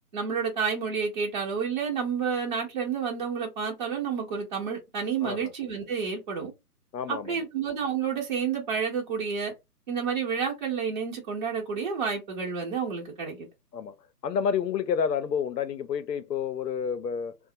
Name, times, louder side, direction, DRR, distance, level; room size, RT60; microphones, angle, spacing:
voice 1, 0.1-6.5 7.1-9.5 9.9-13.5, right 6 dB, 30° right, 0.9 m, -30 dB
voice 2, 5.2-5.5 6.9-7.3 13.7-13.9 14.2-17.4, left 7 dB, 80° left, 0.6 m, -29 dB
2.9 x 2.0 x 2.7 m
figure-of-eight pair, 145°, 48 cm